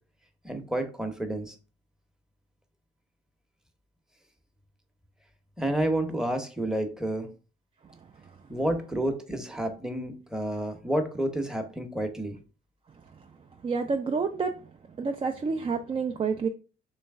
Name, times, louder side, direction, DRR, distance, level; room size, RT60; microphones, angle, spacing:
voice 1, 0.4-1.6 5.6-7.3 8.5-12.4, right 1 dB, 5° right, 6 dB, 0.7 m, -30 dB
voice 2, 13.6-14.5 15.0-16.5, right 5 dB, 30° right, 5 dB, 0.3 m, -28 dB
3.1 x 3.0 x 3.5 m, 0.35 s
cardioid pair, 90°, 20 cm